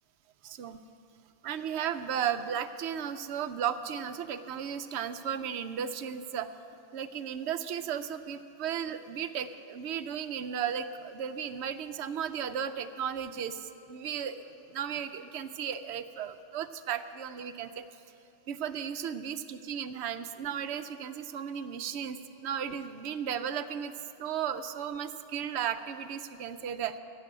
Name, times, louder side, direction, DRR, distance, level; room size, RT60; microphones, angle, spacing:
voice 1, 0.4-0.8 1.4-6.5 6.9-17.8 18.5-23.9 24.2-27.0, right 8 dB, 65° right, 10 dB, 0.8 m, -35 dB
16.0 x 6.7 x 8.9 m, 2.9 s
omnidirectional pair, 1.3 m